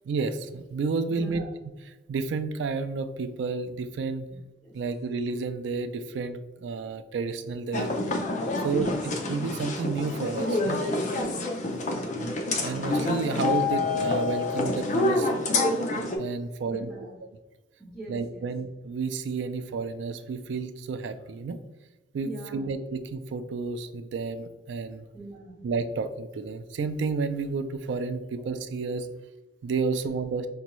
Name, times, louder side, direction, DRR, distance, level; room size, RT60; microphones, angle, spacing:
voice 1, 0.0-1.4 2.1-4.3 4.7-7.9 8.6-10.8 12.6-15.4 16.2-16.9 18.1-21.6 22.1-25.0 25.6-29.1 29.6-30.5, right 4 dB, 75° right, 10 dB, 0.3 m, -31 dB
voice 2, 1.1-1.4 4.3-4.8 8.5-9.0 11.1-11.8 16.7-17.2 17.8-18.5 22.2-22.7 25.1-25.6, right 2 dB, ahead, -8 dB, 1.1 m, -43 dB
sound 1, 7.7-16.2, left 2 dB, 40° left, 0.5 m, -27 dB
5.0 x 2.2 x 3.0 m, 1.1 s
head